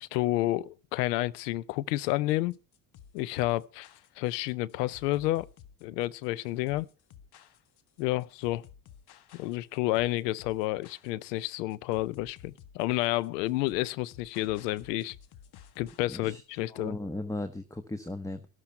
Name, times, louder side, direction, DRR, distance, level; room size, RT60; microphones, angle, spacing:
voice 1, 0.0-2.6 3.1-3.9 4.2-5.5 5.8-6.9 8.0-8.6 9.3-15.2 15.8-17.0, left 17 dB, 90° left, 0.8 m, -30 dB
sound 1, 2.1-16.1, left 9 dB, 55° left, 1.6 m, -54 dB
voice 2, 16.1-16.4 16.7-18.5, left 1 dB, 5° left, 1.2 m, -36 dB
13.0 x 12.5 x 5.6 m
supercardioid pair, 80°, 47 cm